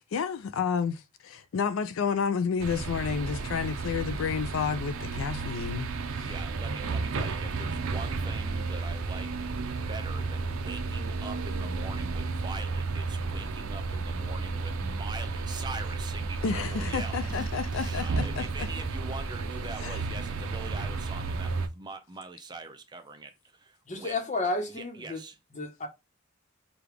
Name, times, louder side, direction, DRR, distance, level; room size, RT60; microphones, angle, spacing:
voice 1, 0.0-6.3 16.4-18.7 19.8-20.0, left 6 dB, 70° left, 0.4 m, -31 dB
sound 1, 2.6-21.7, right 4 dB, 85° right, 0.6 m, -32 dB
voice 2, 6.2-9.4 9.9-24.2 24.7-25.4, right 3 dB, 20° right, 0.5 m, -43 dB
voice 3, 23.9-25.2 25.5-25.9, left 2 dB, 35° left, 1.0 m, -31 dB
4.9 x 2.4 x 3.3 m
head